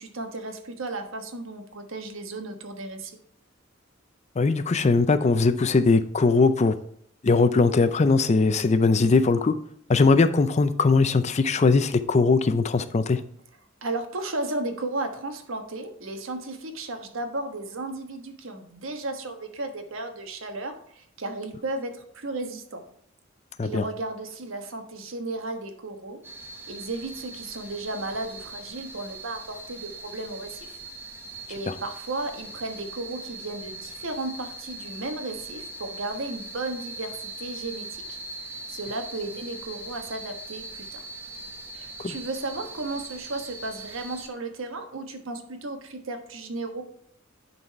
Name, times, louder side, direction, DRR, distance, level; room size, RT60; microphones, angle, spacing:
voice 1, 0.0-3.2 13.8-22.8 23.6-26.2 26.7-30.8 31.5-38.0 38.7-41.0 41.7-46.8, right 2 dB, 85° right, 5 dB, 1.2 m, -34 dB
voice 2, 4.4-6.7 7.2-9.5 9.9-13.2 23.6-23.8 42.0-42.1, left 3 dB, 35° left, 12 dB, 0.4 m, -20 dB
sound 1, 26.2-44.3, right 2 dB, 10° right, 0.9 m, -41 dB
10.5 x 4.1 x 4.5 m, 0.64 s
head